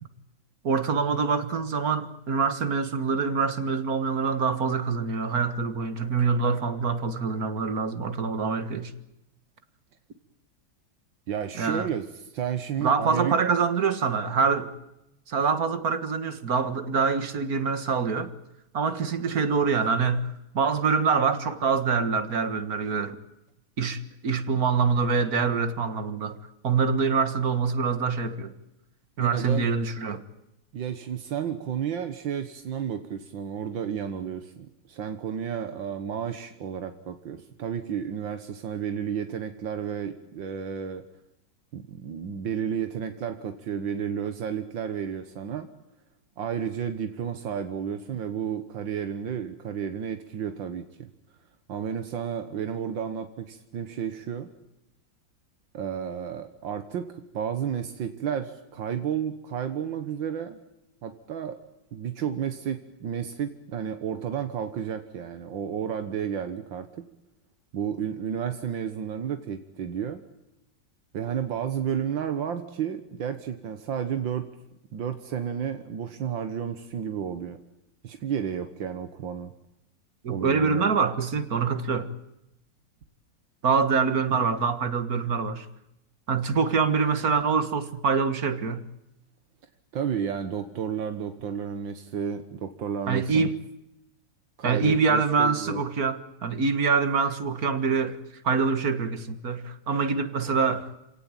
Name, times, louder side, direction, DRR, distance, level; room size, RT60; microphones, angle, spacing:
voice 1, 0.6-8.9 11.6-11.9 12.8-14.7 15.3-18.3 18.7-23.2 23.8-26.4 26.6-28.5 29.2-30.2 80.2-82.1 83.6-85.7 86.3-88.8 93.1-93.6 94.6-98.2 98.4-100.9, right 5 dB, 50° right, 2.0 m, -25 dB
voice 2, 11.3-13.4 29.2-29.7 30.7-41.0 41.7-45.7 46.4-51.1 51.7-54.5 55.7-60.6 61.0-61.6 61.9-67.1 67.7-70.2 71.1-74.5 74.9-77.6 78.0-79.5 80.3-80.9 89.9-93.5 94.6-95.8, right 8 dB, 85° right, 2.1 m, -32 dB
27.5 x 18.0 x 9.0 m
omnidirectional pair, 2.0 m